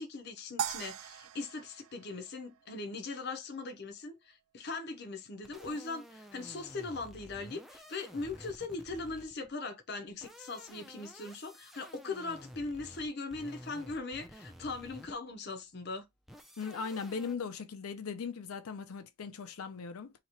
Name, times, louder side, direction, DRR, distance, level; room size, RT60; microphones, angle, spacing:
voice 1, 0.0-16.1, left 3 dB, 50° left, 0.7 m, -40 dB
sound 1, 0.6-3.0, right 8 dB, 75° right, 0.3 m, -40 dB
sound 2, 5.4-9.5 10.1-15.3 16.3-17.4, equal, ahead, 0.4 m, -52 dB
voice 2, 16.6-20.1, left 5 dB, 90° left, 0.6 m, -39 dB
3.0 x 2.9 x 4.2 m
head